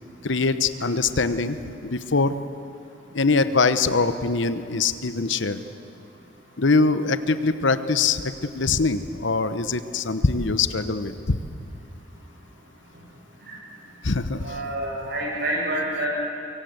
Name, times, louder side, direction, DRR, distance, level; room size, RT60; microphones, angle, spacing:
voice 1, 0.2-2.4 3.1-5.6 6.6-11.4 14.0-14.5, left 4 dB, 70° left, 11 dB, 1.0 m, -23 dB
voice 2, 14.4-16.1, right 1 dB, 55° right, -3 dB, 7.5 m, -28 dB
24.5 x 23.5 x 8.0 m, 2.6 s
head